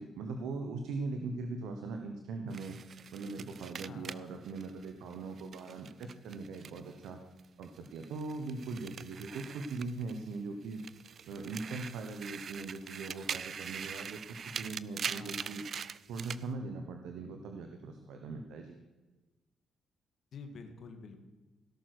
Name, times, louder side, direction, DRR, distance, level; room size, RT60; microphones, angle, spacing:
voice 1, 0.0-2.8 3.1-7.2 7.6-10.8 11.3-15.6 16.1-18.8, right 3 dB, 85° right, 5 dB, 1.1 m, -40 dB
sound 1, 2.5-7.1 7.4-10.4 10.7-16.4, right 7 dB, 50° right, 0.4 m, -43 dB
voice 2, 3.9-4.4 15.0-15.6 20.3-21.2, left 4 dB, 60° left, 6 dB, 1.8 m, -48 dB
17.0 x 6.7 x 6.2 m, 1.2 s
cardioid pair, 90°, 0 cm